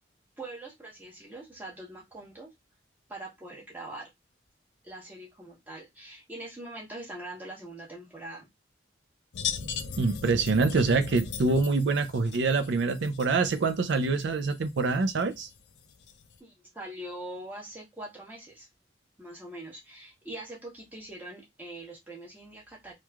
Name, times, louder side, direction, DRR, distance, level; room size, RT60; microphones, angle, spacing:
voice 1, 0.4-2.5 3.1-4.1 4.8-8.5 16.4-18.7 19.2-22.9, right 1 dB, 10° right, 0.9 m, -43 dB
sound 1, 9.3-16.4, left 7 dB, 70° left, 0.4 m, -39 dB
voice 2, 10.0-15.5, right 3 dB, 70° right, 0.4 m, -25 dB
3.0 x 2.4 x 2.2 m
head